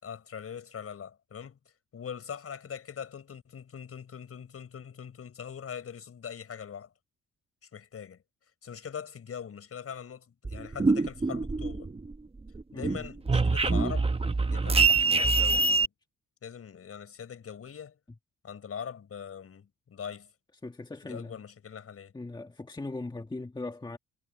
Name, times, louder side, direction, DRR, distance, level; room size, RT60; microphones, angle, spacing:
voice 1, 0.0-1.6 1.9-6.9 7.6-8.2 8.6-11.9 12.7-14.1 14.5-15.9 16.4-18.0 18.4-20.3 21.0-22.1, left 7 dB, 50° left, 5.8 m, -42 dB
sound 1, 10.4-12.1 12.5-15.9, right 3 dB, 20° right, 1.2 m, -25 dB
voice 2, 12.7-13.0 20.6-21.4 22.1-24.0, left 2 dB, 15° left, 1.6 m, -39 dB
cardioid pair, 90°, 30 cm